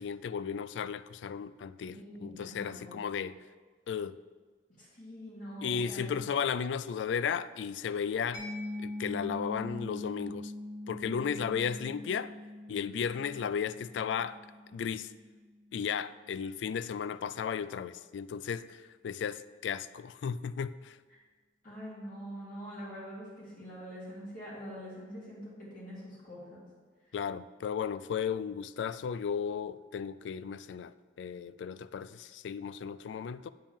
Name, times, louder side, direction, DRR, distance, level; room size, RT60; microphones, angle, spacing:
voice 1, 0.0-3.4 3.9-4.2 5.6-8.4 8.8-10.5 10.9-12.3 12.7-14.4 14.7-15.1 15.7-21.0 27.1-33.5, left 7 dB, 85° left, 0.3 m, -35 dB
voice 2, 1.8-2.9 4.8-6.2 11.0-11.5 21.6-26.6, equal, 50° left, 2.8 m, -44 dB
Mallet percussion, 8.3-15.7, left 1 dB, 25° left, 1.6 m, -43 dB
8.6 x 7.4 x 3.6 m
head